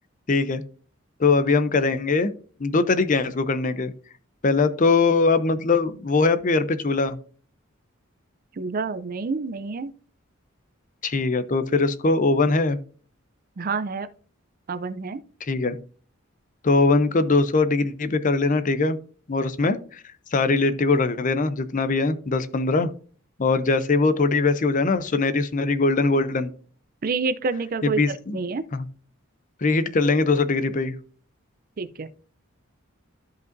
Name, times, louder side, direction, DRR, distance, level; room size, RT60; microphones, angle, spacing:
voice 1, 0.3-0.6 1.2-2.3 2.6-3.9 4.4-7.2 11.0-12.8 15.4-15.8 16.6-19.0 19.3-20.0 20.3-22.9 23.4-26.5 27.8-28.4 28.7-28.8 29.6-30.9, left 3 dB, 40° left, 0.6 m, -21 dB
voice 2, 8.6-9.9 13.6-14.1 14.7-15.2 27.0-28.6 31.8-32.1, right 4 dB, 45° right, 0.5 m, -28 dB
13.0 x 5.3 x 2.6 m
head